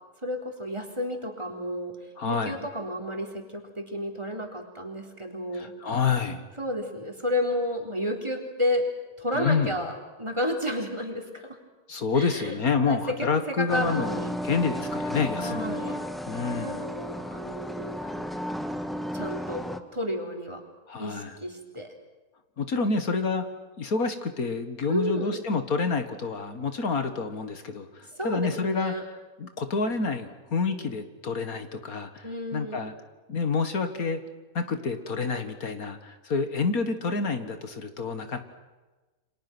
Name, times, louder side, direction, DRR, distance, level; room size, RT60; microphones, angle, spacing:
voice 1, 0.2-2.0 2.2-5.7 6.6-8.9 9.2-11.6 12.1-12.6 12.8-13.2 13.5-14.3 15.4-16.0 16.4-18.3 19.1-20.6 21.0-21.9 24.9-25.4 28.1-29.0 32.2-32.8, equal, 20° right, 2 dB, 3.9 m, -31 dB
voice 2, 2.2-2.5 5.5-6.5 9.4-9.8 11.9-16.8 20.9-21.4 22.6-23.4 23.8-28.9 29.4-32.9 33.3-34.2 34.5-38.4, left 4 dB, 70° left, 8 dB, 2.2 m, -28 dB
sound 1, 13.7-19.8, equal, ahead, 1.5 m, -33 dB
29.5 x 26.5 x 6.2 m, 1.2 s
omnidirectional pair, 1.6 m